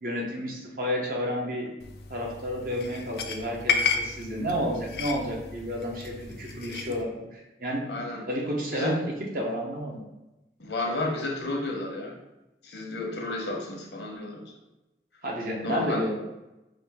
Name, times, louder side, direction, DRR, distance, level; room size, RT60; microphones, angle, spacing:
voice 1, 0.0-1.7 2.1-7.8 8.3-10.0 15.2-16.2, equal, 50° right, -1 dB, 0.9 m, -31 dB
sound 1, 1.8-7.0, left 5 dB, 60° left, 0.4 m, -32 dB
voice 2, 7.9-8.2 8.7-9.0 10.6-12.1 12.6-14.5 15.6-16.1, left 2 dB, 80° left, 0 dB, 0.9 m, -31 dB
5.0 x 2.5 x 3.5 m, 0.98 s
head